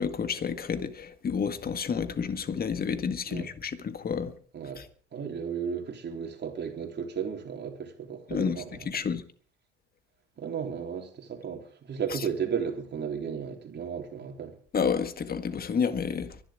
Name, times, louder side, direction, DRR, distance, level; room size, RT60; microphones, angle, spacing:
voice 1, 0.0-4.3 8.3-8.6 8.9-9.2 14.7-16.3, left 6 dB, 25° left, 1.8 m, -30 dB
voice 2, 5.1-8.9 10.4-14.5, right 7 dB, 30° right, 3.7 m, -34 dB
24.0 x 11.5 x 3.7 m
hypercardioid pair, 75°, 34 cm